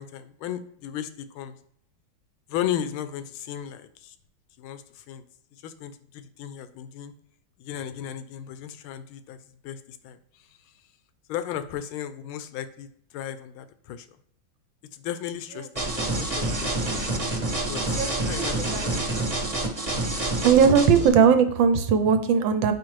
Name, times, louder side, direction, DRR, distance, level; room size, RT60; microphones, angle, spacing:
voice 1, 0.0-1.6 2.5-4.1 4.6-5.2 5.6-7.1 7.6-10.4 11.3-14.1 14.9-16.9 17.7-19.0 20.9-21.1, left 10 dB, 80° left, 11 dB, 1.4 m, -35 dB
sound 1, 15.8-21.1, right 2 dB, 25° right, 0.9 m, -27 dB
voice 2, 17.8-18.3 18.7-18.9 20.4-22.7, right 6 dB, 75° right, 9 dB, 1.3 m, -19 dB
7.5 x 5.2 x 3.1 m, 0.67 s
omnidirectional pair, 2.3 m